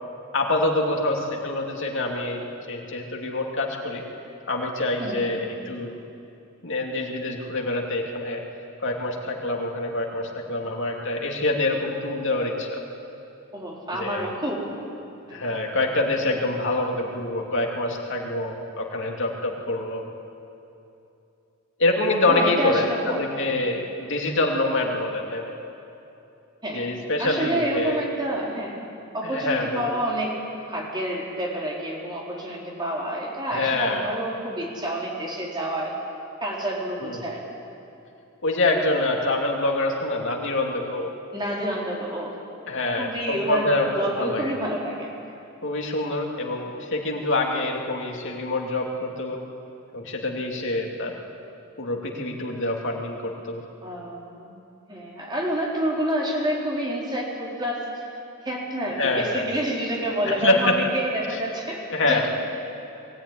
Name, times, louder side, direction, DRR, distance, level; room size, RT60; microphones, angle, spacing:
voice 1, 0.3-4.0 4.5-5.9 6.6-8.4 8.8-12.8 13.9-14.3 15.3-20.0 21.8-25.6 26.7-28.0 29.2-29.9 33.5-34.0 37.0-37.2 38.4-41.1 42.7-44.5 45.6-49.4 49.9-51.2 51.8-53.6 59.0-59.5 60.2-60.8 61.3-61.4 61.9-62.2, left 2 dB, 60° left, 0 dB, 2.8 m, -26 dB
voice 2, 13.5-14.7 15.3-15.4 22.3-23.3 26.6-26.9 27.2-28.8 29.1-30.4 30.7-36.0 36.4-37.4 41.3-42.3 43.0-43.7 43.9-45.1 53.8-54.5 54.9-58.1 58.4-62.3, right 1 dB, 20° right, -3 dB, 4.2 m, -28 dB
21.5 x 17.0 x 9.9 m, 2.8 s
head